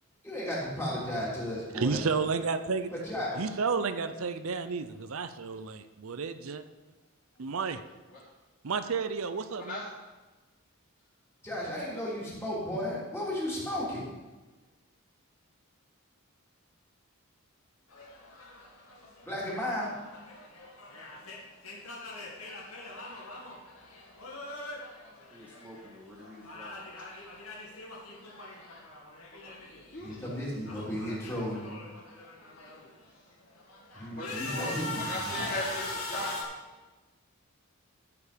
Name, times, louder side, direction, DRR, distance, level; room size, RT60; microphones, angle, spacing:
voice 1, 0.2-2.0 2.9-3.4 11.4-14.0 19.2-19.9 30.0-31.7 33.9-35.6, left 1 dB, 10° left, -6 dB, 3.3 m, -34 dB
voice 2, 1.7-2.9 3.4-6.6 7.4-7.8 8.6-9.8, right 5 dB, 75° right, 10 dB, 0.6 m, -31 dB
voice 3, 13.2-13.9 25.3-27.1, left 1 dB, 5° right, -5 dB, 1.9 m, -51 dB
sound 1, 17.9-25.9 26.2-29.9 30.2-32.9 33.4-36.4, left 2 dB, 80° left, 2.4 m, -42 dB
voice 4, 29.9-30.2 34.1-36.5, left 1 dB, 40° left, -6 dB, 3.8 m, -37 dB
13.0 x 7.0 x 5.2 m, 1.2 s
head